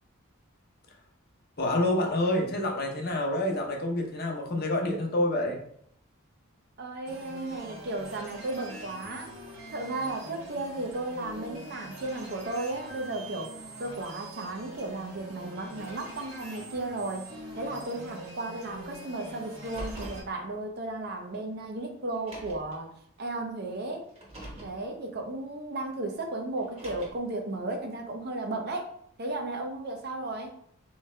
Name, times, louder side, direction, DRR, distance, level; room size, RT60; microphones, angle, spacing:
voice 1, 1.6-5.6, left 1 dB, 50° left, 2 dB, 0.7 m, -27 dB
voice 2, 6.8-9.3 9.7-22.9 23.2-24.1 24.6-28.9 29.2-30.5, right 2 dB, 50° right, 4 dB, 0.6 m, -35 dB
sound 1, 7.0-20.2, right 1 dB, 65° right, 1.3 m, -44 dB
Car, 19.5-20.3 21.3-21.4 22.1-22.8 24.1-24.8 26.6-27.3, right 1 dB, 30° right, 1.0 m, -42 dB
3.4 x 3.2 x 3.2 m, 0.66 s
head